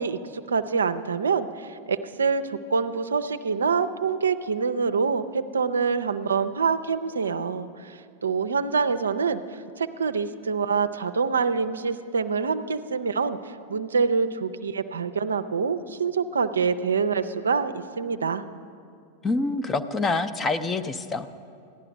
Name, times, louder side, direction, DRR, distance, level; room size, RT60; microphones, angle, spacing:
voice 1, 0.0-13.4 13.7-18.4, right 5 dB, 70° right, 11 dB, 0.4 m, -26 dB
voice 2, 19.2-21.3, left 3 dB, 20° left, 13 dB, 0.5 m, -26 dB
15.0 x 10.5 x 5.2 m, 2.3 s
figure-of-eight pair, 90°, 0 cm